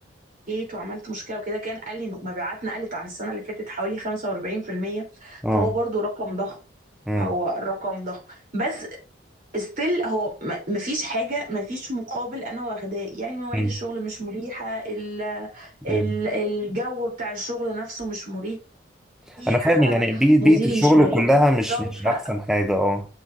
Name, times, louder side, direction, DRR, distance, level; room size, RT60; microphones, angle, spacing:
voice 1, 0.5-6.6 7.2-8.9 9.5-18.6 19.4-20.0 20.4-21.2 21.7-22.2, right 1 dB, 45° right, 3.1 m, -29 dB
voice 2, 19.3-23.1, equal, 5° right, 0.5 m, -20 dB
7.5 x 6.0 x 2.5 m
head